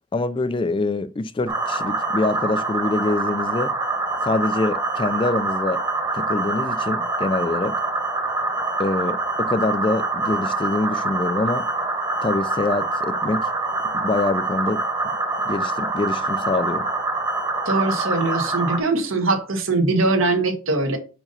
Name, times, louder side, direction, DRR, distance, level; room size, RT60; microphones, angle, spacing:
voice 1, 0.1-3.7 4.2-5.8 6.1-7.7 8.8-11.6 12.2-13.5 13.9-15.2 15.4-16.9, left 2 dB, 25° left, 0.3 m, -25 dB
sound 1, 1.5-18.8, right 2 dB, 20° right, 1.1 m, -25 dB
voice 2, 17.6-21.0, right 3 dB, 75° right, 1.4 m, -21 dB
5.2 x 4.8 x 5.4 m
head